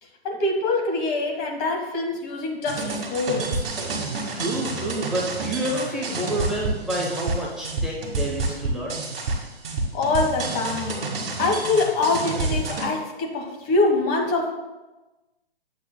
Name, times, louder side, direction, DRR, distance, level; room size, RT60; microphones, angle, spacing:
voice 1, 0.2-3.7 9.9-14.5, left 3 dB, 25° left, 1 dB, 1.5 m, -24 dB
sound 1, 2.7-12.9, right 3 dB, 60° right, 1.9 m, -29 dB
voice 2, 4.3-9.0, right 1 dB, ahead, -5 dB, 0.9 m, -28 dB
11.0 x 8.1 x 2.2 m, 1.1 s
figure-of-eight pair, 130°, 32 cm